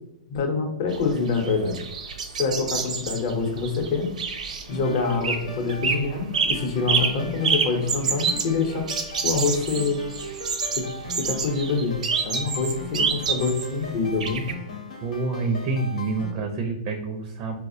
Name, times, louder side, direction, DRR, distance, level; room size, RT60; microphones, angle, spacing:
voice 1, 0.3-1.8 2.3-4.1 4.7-8.9 9.2-10.0 10.8-10.9 11.1-12.0 12.2-14.5, left 4 dB, 45° left, 3 dB, 0.7 m, -26 dB
sound 1, 0.9-5.4 5.7-6.0 6.3-13.7 14.2-14.5, right 5 dB, 85° right, 0.6 m, -27 dB
sound 2, 4.7-16.3, equal, 90° left, 0.9 m, -38 dB
voice 2, 15.0-17.6, right 3 dB, 35° right, 3 dB, 0.4 m, -27 dB
4.1 x 2.0 x 2.6 m, 0.90 s
hypercardioid pair, 150°, 4 cm